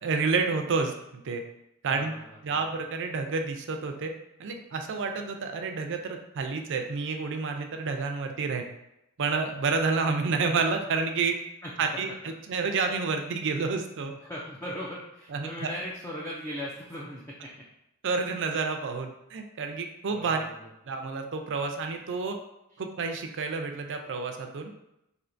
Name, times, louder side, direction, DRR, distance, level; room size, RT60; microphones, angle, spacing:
voice 1, 0.0-1.4 1.8-2.1 2.4-4.1 4.4-8.6 9.2-11.3 11.8-14.1 15.3-15.5 18.0-20.4 20.9-22.4 22.8-24.7, right 4 dB, 55° right, 5 dB, 0.4 m, -29 dB
voice 2, 1.9-2.6 11.6-11.7 14.1-17.5 20.1-20.7 22.7-22.8, equal, 10° left, -5 dB, 0.4 m, -39 dB
4.3 x 2.8 x 2.5 m, 0.86 s
head